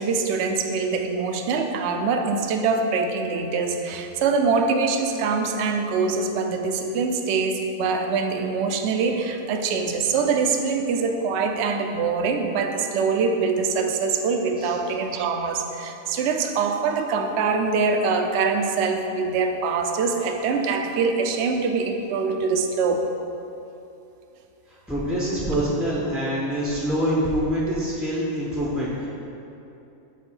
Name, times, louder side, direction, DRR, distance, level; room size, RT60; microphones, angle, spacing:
voice 1, 0.0-23.0 25.5-25.6, right 4 dB, 65° right, 5 dB, 0.7 m, -24 dB
voice 2, 24.9-29.1, equal, ahead, -6 dB, 0.4 m, -25 dB
5.3 x 4.3 x 5.5 m, 2.8 s
omnidirectional pair, 1.4 m